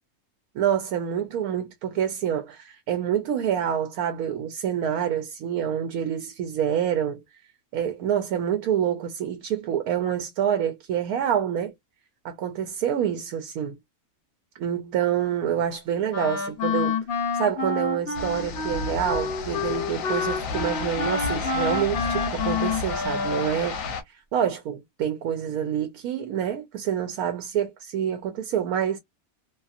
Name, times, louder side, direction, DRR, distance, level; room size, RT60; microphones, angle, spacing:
voice 1, 0.5-7.2 7.7-11.7 12.2-13.8 14.6-17.0 17.3-29.0, right 9 dB, 85° right, 1.0 m, -27 dB
Wind instrument woodwind instrument, 16.1-23.6, left 4 dB, 50° left, 1.0 m, -28 dB
sound 1, 18.1-24.0, left 5 dB, 70° left, 1.1 m, -32 dB
2.7 x 2.5 x 2.4 m
omnidirectional pair, 1.5 m